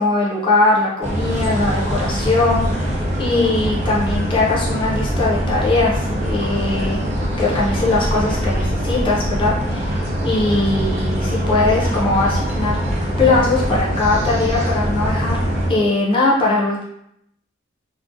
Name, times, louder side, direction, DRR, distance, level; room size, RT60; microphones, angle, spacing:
voice 1, 0.0-7.0 7.4-16.8, left 2 dB, 25° left, -5 dB, 0.5 m, -20 dB
sound 1, 1.0-15.7, equal, 35° right, 0.6 m, -22 dB
2.5 x 2.0 x 2.5 m, 0.75 s
head